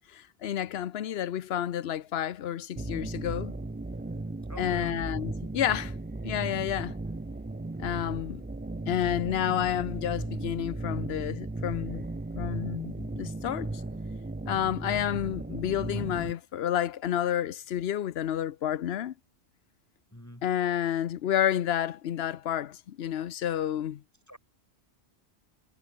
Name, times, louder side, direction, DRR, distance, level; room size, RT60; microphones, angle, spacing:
voice 1, 0.1-3.5 4.6-5.9 6.2-6.9 7.8-8.4 8.9-12.1 12.3-13.7 14.5-19.1 20.4-24.0, left 10 dB, 70° left, 0.9 m, -30 dB
sound 1, 2.8-16.3, right 2 dB, 15° right, 0.3 m, -36 dB
voice 2, 4.5-5.1 20.1-20.5 24.3-24.4, equal, 15° left, 4.2 m, -46 dB
omnidirectional pair, 1.1 m